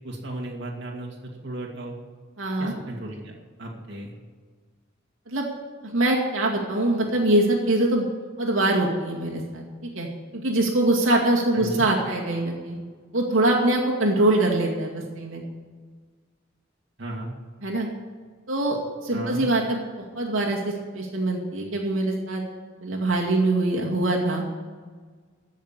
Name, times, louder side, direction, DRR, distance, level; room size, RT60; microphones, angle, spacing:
voice 1, 0.0-1.2 1.4-1.9 2.6-3.3 3.6-4.1 11.5-11.9 17.0-17.3 19.1-19.5, right 1 dB, 60° right, -2 dB, 2.4 m, -34 dB
voice 2, 2.4-2.7 5.3-5.5 5.8-8.1 8.4-9.6 10.0-10.1 10.3-12.8 13.1-15.4 17.6-17.9 18.5-19.8 20.2-22.4 22.8-24.4, right 2 dB, 80° right, -2 dB, 2.3 m, -23 dB
15.0 x 6.5 x 8.8 m, 1.5 s
head